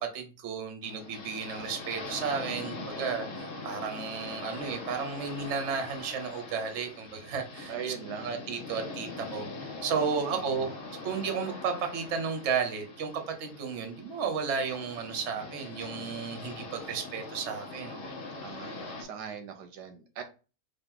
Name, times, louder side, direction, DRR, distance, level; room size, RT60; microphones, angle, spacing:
voice 1, 0.1-7.9 8.2-9.5 9.8-18.0, right 6 dB, 50° right, 1.0 m, -33 dB
sound 1, 0.8-19.0, left 2 dB, 70° left, 1.9 m, -42 dB
voice 2, 7.7-8.3 10.3-10.7 18.4-20.2, right 7 dB, 75° right, 1.1 m, -40 dB
3.3 x 3.0 x 3.6 m
omnidirectional pair, 1.9 m